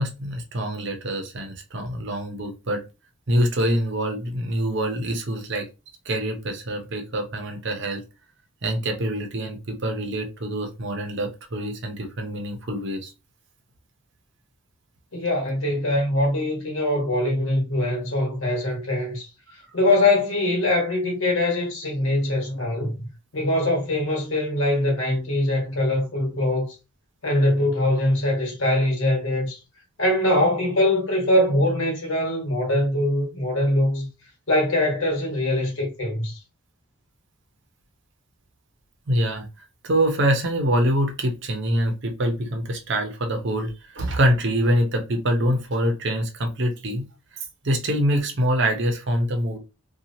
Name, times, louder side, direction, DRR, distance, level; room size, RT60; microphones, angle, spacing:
voice 1, 0.0-2.8 3.3-5.6 6.0-8.0 8.6-13.1 19.5-19.6 39.1-39.5 39.8-47.0 47.6-49.6, equal, 55° right, 0.7 m, -25 dB
voice 2, 15.1-19.3 19.7-23.0 23.3-26.7 27.2-29.6 30.0-34.1 34.5-36.4, left 1 dB, 65° left, 1.3 m, -22 dB
2.9 x 2.3 x 2.7 m
head